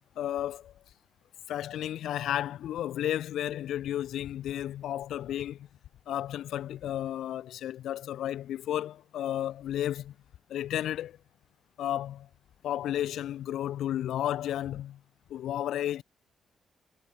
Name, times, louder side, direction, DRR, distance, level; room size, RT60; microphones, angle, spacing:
voice 1, 0.2-0.7 1.5-5.7 6.1-10.1 10.5-11.2 11.8-12.3 12.6-15.0 15.3-16.0, left 11 dB, 80° left, 2.1 m, -32 dB
wide cardioid pair, 180°, 0 cm